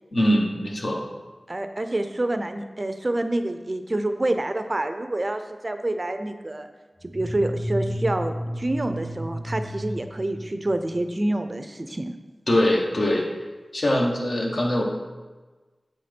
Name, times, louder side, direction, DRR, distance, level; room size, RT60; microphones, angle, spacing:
voice 1, 0.1-1.0 12.5-13.2 13.7-14.8, left 1 dB, 60° left, 0 dB, 1.2 m, -22 dB
voice 2, 1.5-6.7 7.0-12.1, right 1 dB, 35° right, 7 dB, 0.5 m, -27 dB
sound 1, 7.0-11.1, equal, 15° left, 1.2 m, -32 dB
7.5 x 4.2 x 5.1 m, 1.3 s
wide cardioid pair, 80°, 0 cm